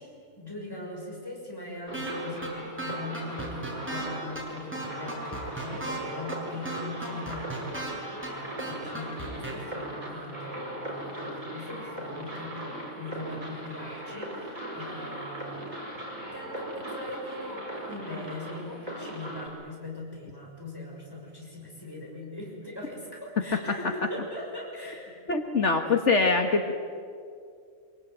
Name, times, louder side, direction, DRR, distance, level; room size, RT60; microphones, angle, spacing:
voice 1, 0.0-16.0 16.3-25.2, left 1 dB, 15° left, -2 dB, 6.3 m, -40 dB
sound 1, 1.9-2.1 2.4-2.5 2.8-4.1 4.4-4.5 4.7-6.0 6.3-6.4 6.7-7.9 8.2-8.3 8.6-9.5, right 2 dB, 10° right, 6.7 m, -35 dB
sound 2, 1.9-19.5, right 1 dB, 25° right, 5.7 m, -39 dB
voice 2, 25.3-26.7, left 3 dB, 60° left, 5 dB, 1.8 m, -23 dB
25.5 x 23.5 x 9.3 m, 2.3 s
omnidirectional pair, 1.4 m